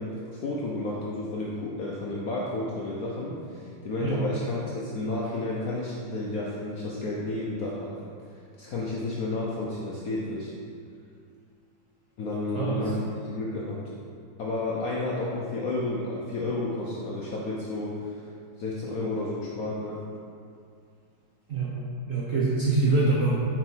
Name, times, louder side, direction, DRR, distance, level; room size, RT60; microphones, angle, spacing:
voice 1, 0.0-7.9 8.6-10.5 12.2-13.8 14.4-18.3 18.6-20.0, left 2 dB, 65° left, -4 dB, 0.9 m, -31 dB
voice 2, 22.1-23.3, right 3 dB, 65° right, -6 dB, 0.8 m, -24 dB
6.1 x 4.2 x 4.4 m, 2.4 s
omnidirectional pair, 2.2 m